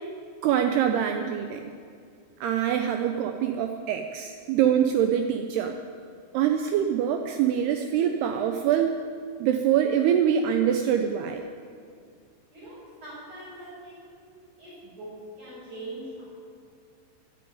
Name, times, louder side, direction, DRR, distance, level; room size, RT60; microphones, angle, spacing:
voice 1, 0.4-1.6 2.4-5.7 6.3-9.0 9.4-11.4, right 9 dB, 80° right, 6 dB, 2.3 m, -24 dB
voice 2, 12.5-14.1 14.6-16.3, right 1 dB, 40° right, -11 dB, 6.4 m, -42 dB
11.0 x 11.0 x 9.5 m, 2.2 s
omnidirectional pair, 5.4 m